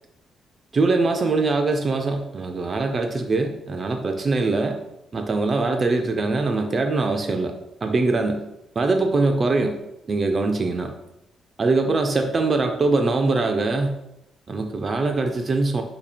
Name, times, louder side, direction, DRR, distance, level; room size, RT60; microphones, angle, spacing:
voice 1, 0.7-4.8 5.1-7.5 7.8-8.4 8.8-9.8 10.1-10.9 11.6-14.0 14.5-15.8, right 3 dB, 30° right, 5 dB, 0.3 m, -22 dB
2.7 x 2.7 x 4.1 m, 0.87 s
cardioid pair, 145°, 0 cm